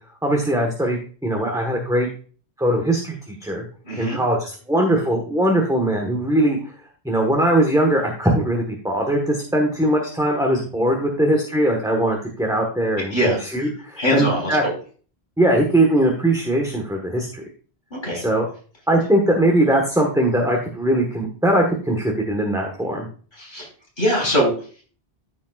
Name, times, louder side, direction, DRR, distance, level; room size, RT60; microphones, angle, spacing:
voice 1, 0.2-2.1 2.6-3.7 4.0-6.7 7.0-14.6 15.4-17.4 18.1-18.4 18.9-23.1, right 1 dB, 5° right, 0 dB, 1.3 m, -20 dB
voice 2, 3.8-4.2 13.1-13.4 14.0-14.7 17.9-18.2 23.4-23.7 24.0-24.5, equal, 55° left, -2 dB, 4.1 m, -21 dB
13.5 x 5.3 x 2.4 m, 0.40 s
omnidirectional pair, 1.1 m